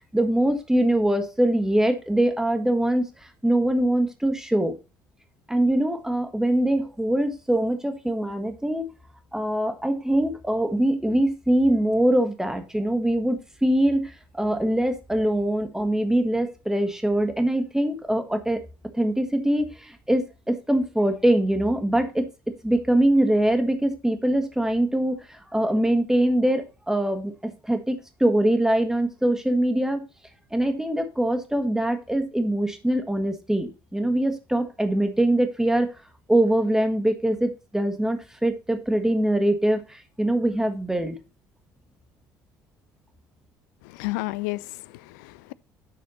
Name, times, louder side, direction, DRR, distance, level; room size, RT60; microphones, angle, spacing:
voice 1, 0.1-3.0 3.4-4.8 5.5-8.9 9.3-18.6 18.9-22.3 22.6-30.0 30.5-35.9 36.3-41.2, right 1 dB, 5° right, 1.6 m, -23 dB
voice 2, 43.8-45.5, left 21 dB, 65° left, 0.4 m, -32 dB
10.0 x 6.2 x 4.1 m
figure-of-eight pair, 55°, 11 cm